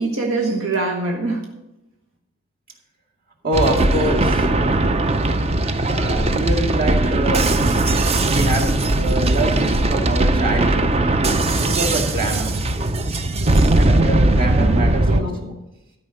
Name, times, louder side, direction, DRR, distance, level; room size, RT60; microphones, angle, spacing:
voice 1, 0.0-1.5 14.6-15.4, right 3 dB, 75° right, 0 dB, 1.4 m, -24 dB
voice 2, 3.4-4.5 5.8-7.4 8.2-10.9 11.6-13.3 13.7-15.5, right 1 dB, 45° right, -1 dB, 2.2 m, -25 dB
sound 1, 3.5-15.2, right 2 dB, 30° right, 0.6 m, -19 dB
13.0 x 5.4 x 7.7 m, 0.93 s
head